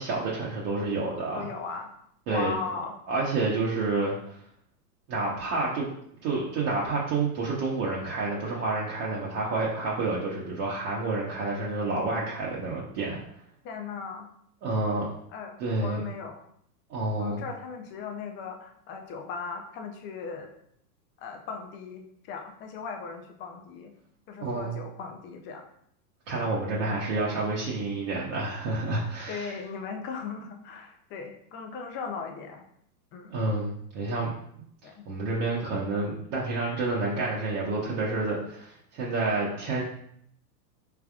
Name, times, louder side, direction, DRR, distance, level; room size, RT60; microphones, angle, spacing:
voice 1, 0.0-1.5 2.3-2.5 3.1-4.4 5.1-5.9 6.2-13.2 14.6-15.1 15.6-16.0 16.9-17.4 24.4-24.7 26.3-29.5 33.3-34.3 35.0-39.8, right 3 dB, 50° right, -5 dB, 1.1 m, -29 dB
voice 2, 1.3-1.9 2.3-3.0 13.6-14.3 15.3-16.4 17.2-20.5 21.2-23.9 24.3-25.6 26.8-27.0 29.3-32.6 33.1-33.3 34.8-35.0, left 5 dB, 25° left, 4 dB, 0.4 m, -38 dB
4.6 x 3.5 x 2.4 m, 0.69 s
hypercardioid pair, 115°, 49 cm